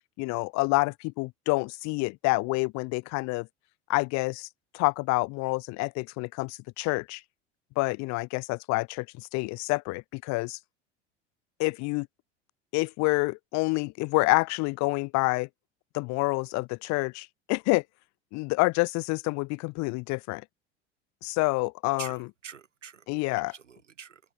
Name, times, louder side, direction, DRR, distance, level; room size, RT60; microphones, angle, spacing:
voice 1, 0.2-3.5 3.9-4.5 4.7-7.2 7.8-10.6 11.6-12.1 12.7-15.5 15.9-17.8 18.3-20.4 21.2-22.3 23.1-23.5, left 26 dB, 50° left, 1.2 m, -28 dB
voice 2, 22.0-24.2, right 7 dB, 80° right, 4.6 m, -46 dB
open air
figure-of-eight pair, 75°, 36 cm